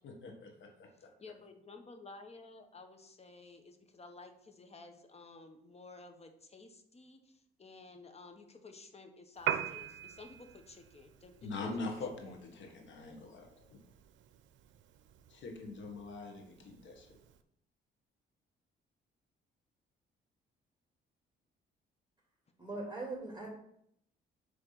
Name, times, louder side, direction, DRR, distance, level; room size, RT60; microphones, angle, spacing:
voice 1, 0.0-0.9 11.4-13.8 15.3-17.1, left 3 dB, 70° left, 2 dB, 1.6 m, -43 dB
voice 2, 1.2-12.3, left 3 dB, 30° left, 6 dB, 1.1 m, -53 dB
Piano, 9.4-17.4, right 10 dB, 75° right, 0.6 m, -44 dB
voice 3, 22.6-23.5, right 2 dB, 15° right, -3 dB, 2.5 m, -40 dB
6.7 x 3.4 x 5.8 m, 0.72 s
cardioid pair, 90°, 20 cm